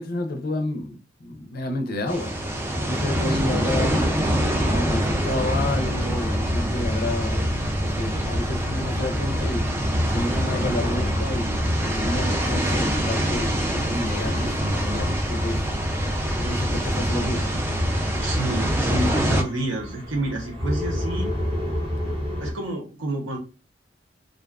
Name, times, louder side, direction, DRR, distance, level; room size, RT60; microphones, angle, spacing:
voice 1, 0.0-2.6 2.9-4.0 4.7-9.6 10.1-13.5 13.9-15.7 16.4-17.7, left 1 dB, 50° left, 0.5 m, -30 dB
sound 1, 2.1-19.4, equal, 10° right, 0.3 m, -24 dB
sound 2, 4.2-22.5, left 1 dB, 30° right, 0.7 m, -36 dB
voice 2, 18.1-21.3 22.4-23.4, right 2 dB, 75° right, 0.8 m, -29 dB
2.4 x 2.3 x 2.3 m
head